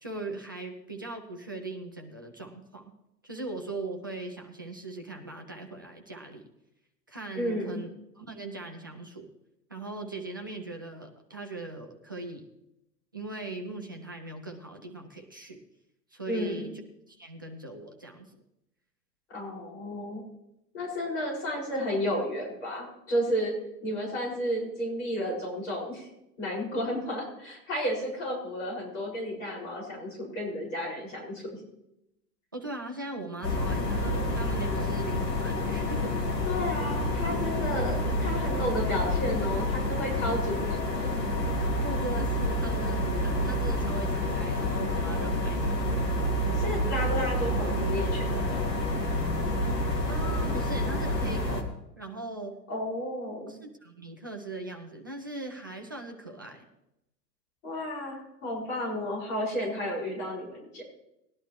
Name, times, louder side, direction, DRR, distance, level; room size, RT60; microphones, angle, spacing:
voice 1, 0.0-2.9 3.2-6.5 7.1-7.9 8.2-9.3 9.7-12.5 13.1-15.6 16.1-16.8 17.1-18.3 32.5-36.2 38.0-38.2 41.8-45.8 50.1-52.6 53.5-56.7, right 2 dB, 15° right, 3 dB, 0.3 m, -39 dB
voice 2, 7.3-7.8 16.3-16.7 19.3-20.2 20.7-23.5 23.8-26.1 26.4-31.6 36.5-41.1 46.5-48.6 52.7-53.6 57.6-60.8, equal, 50° left, -2 dB, 5.5 m, -32 dB
sound 1, 33.4-51.6, left 1 dB, 75° left, 2.2 m, -28 dB
19.0 x 11.0 x 3.0 m, 0.86 s
figure-of-eight pair, 105°, 49 cm